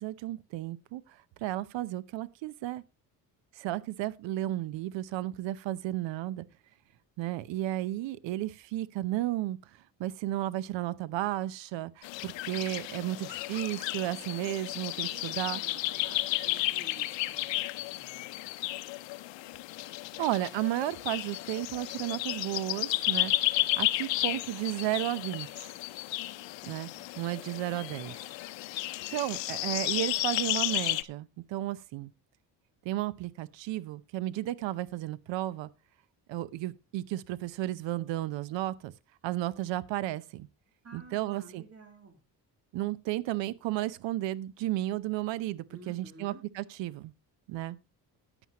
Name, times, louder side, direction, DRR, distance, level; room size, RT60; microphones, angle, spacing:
voice 1, 0.0-2.8 3.6-6.5 7.2-9.6 10.0-15.6 20.2-23.3 23.8-25.7 26.6-26.9 27.2-28.1 29.1-32.1 32.8-35.7 36.3-38.9 39.2-40.5 40.9-41.6 42.7-47.1 47.5-47.8, right 15 dB, 75° right, 0.8 m, -33 dB
sound 1, 12.0-31.0, left 18 dB, 80° left, 0.7 m, -33 dB
voice 2, 15.1-18.2 26.4-26.5 26.8-27.0 40.8-42.2 45.7-46.4, right 3 dB, 35° right, 3.0 m, -52 dB
14.0 x 9.1 x 2.9 m
cardioid pair, 95°, 44 cm